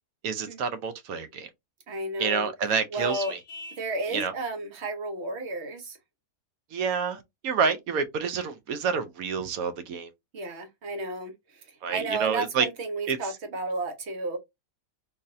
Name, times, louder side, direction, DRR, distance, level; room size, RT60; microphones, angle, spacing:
voice 1, 0.2-1.5 2.2-3.4 4.1-4.3 6.7-10.1 11.8-12.7 13.1-13.2, right 6 dB, 70° right, 1.0 m, -28 dB
voice 2, 1.9-2.5 2.9-3.3 3.8-6.0 10.3-14.4, right 2 dB, 50° right, 1.1 m, -33 dB
Vehicle horn car horn honking, 3.1-3.9, left 2 dB, 60° left, 0.6 m, -42 dB
3.9 x 2.6 x 2.6 m
omnidirectional pair, 1.6 m